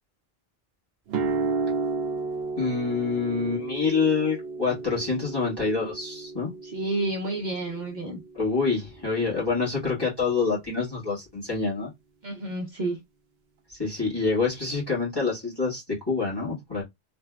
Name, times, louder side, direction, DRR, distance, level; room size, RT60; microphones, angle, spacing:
sound 1, 1.1-9.1, right 4 dB, 75° right, 0.9 m, -33 dB
voice 1, 2.6-6.5 8.3-11.9 13.7-16.8, left 4 dB, 25° left, 1.7 m, -26 dB
voice 2, 6.6-8.2 12.2-13.0, right 2 dB, 50° right, 1.0 m, -30 dB
3.4 x 2.7 x 2.2 m
omnidirectional pair, 1.0 m